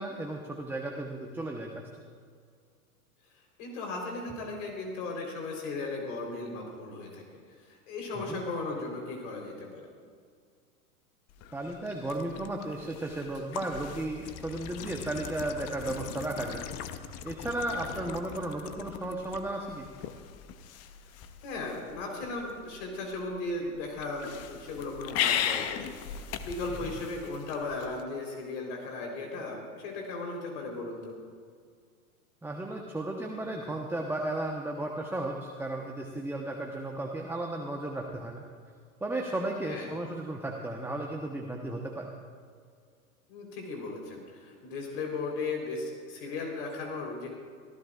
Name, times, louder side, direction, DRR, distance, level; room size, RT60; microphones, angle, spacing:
voice 1, 0.0-1.8 8.2-8.4 11.5-16.6 17.2-19.9 26.8-26.9 32.4-38.4 39.0-42.1, right 2 dB, 5° right, 0 dB, 1.0 m, -34 dB
voice 2, 3.6-7.2 7.6-9.9 18.0-18.1 21.4-31.2 39.7-39.9 43.3-47.3, left 3 dB, 55° left, 1 dB, 4.1 m, -36 dB
sound 1, 11.3-28.0, left 9 dB, 35° left, 1.0 m, -38 dB
24.5 x 15.0 x 2.5 m, 2.1 s
hypercardioid pair, 100°, 43 cm